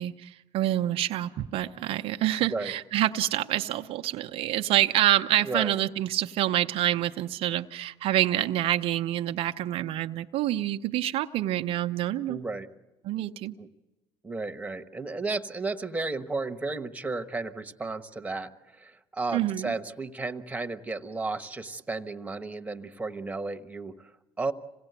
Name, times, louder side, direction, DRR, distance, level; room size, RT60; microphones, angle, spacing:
voice 1, 0.0-12.4 13.1-13.5 19.3-19.7, right 13 dB, 65° right, 6 dB, 0.7 m, -27 dB
voice 2, 2.4-2.7 5.4-5.8 12.3-12.7 13.6-13.7 14.2-24.5, right 3 dB, 15° right, 9 dB, 1.3 m, -33 dB
26.5 x 18.0 x 8.2 m, 1.1 s
supercardioid pair, 80°, 10 cm